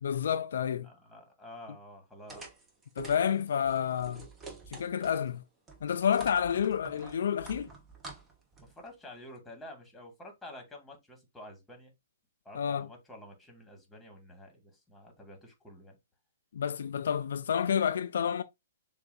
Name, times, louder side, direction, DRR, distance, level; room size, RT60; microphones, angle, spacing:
voice 1, 0.0-0.9 3.0-4.3 4.7-5.4 5.8-7.7 12.5-12.9 16.5-18.4, left 8 dB, 70° left, 0.3 m, -29 dB
voice 2, 0.8-2.4 8.6-11.9 12.4-16.0, left 1 dB, 5° left, 1.9 m, -49 dB
sound 1, 2.3-5.3 5.7-8.9, right 3 dB, 15° right, 1.2 m, -48 dB
6.6 x 2.5 x 2.6 m
hypercardioid pair, 130°, 0 cm